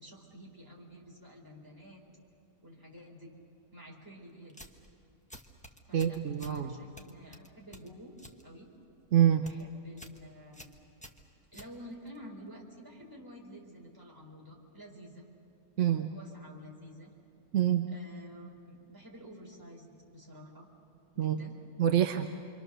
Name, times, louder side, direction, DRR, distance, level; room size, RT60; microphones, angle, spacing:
voice 1, 0.0-2.0 2.6-3.3 3.7-4.6 5.8-8.1 8.4-8.7 9.4-10.8 11.5-15.2 16.1-17.1 17.9-20.7 21.1-21.5, equal, 10° right, -2 dB, 4.0 m, -50 dB
sound 1, 4.5-4.9 5.3-6.6 7.0-8.4 8.7-9.1 9.3-9.6 10.0-10.2 10.5-12.2, equal, 5° left, 1.0 m, -51 dB
voice 2, 5.9-6.7 9.1-9.5 15.8-16.1 17.5-17.9 21.2-21.4 21.8-22.3, right 10 dB, 55° right, 5 dB, 1.0 m, -26 dB
28.0 x 24.5 x 6.7 m, 2.4 s
omnidirectional pair, 1.8 m